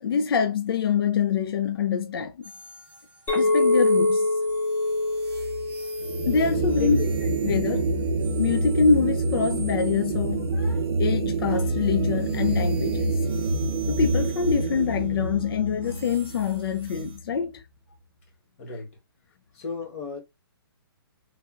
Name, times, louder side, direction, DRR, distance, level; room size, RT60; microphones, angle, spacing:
voice 1, 0.0-2.4 3.3-4.3 6.3-7.0 7.4-7.9 8.4-13.2 13.9-17.6, left 6 dB, 65° left, 0.4 m, -25 dB
sound 1, 2.4-10.7 11.4-17.2, right 4 dB, 10° right, 0.6 m, -45 dB
Chink clink, 3.3-7.8, left 2 dB, 15° left, 0.9 m, -25 dB
sound 2, 6.0-17.3, right 3 dB, 80° right, 0.6 m, -27 dB
voice 2, 6.7-7.3 18.6-18.9 19.5-20.2, left 5 dB, 35° left, 1.1 m, -34 dB
3.2 x 2.5 x 2.4 m
hypercardioid pair, 165°, 13 cm